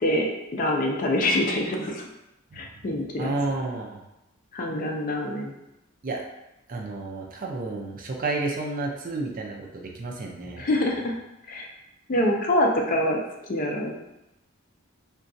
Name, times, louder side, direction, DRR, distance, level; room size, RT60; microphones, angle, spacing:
voice 1, 0.0-2.0 2.5-3.3 4.5-5.5 10.6-11.1 11.5-11.7 12.1-13.2 13.5-14.0, left 1 dB, 40° left, 1 dB, 0.4 m, -25 dB
voice 2, 3.2-4.0 6.0-6.2 6.7-10.6, right 2 dB, 40° right, 0 dB, 0.5 m, -31 dB
3.8 x 2.3 x 2.6 m, 0.91 s
head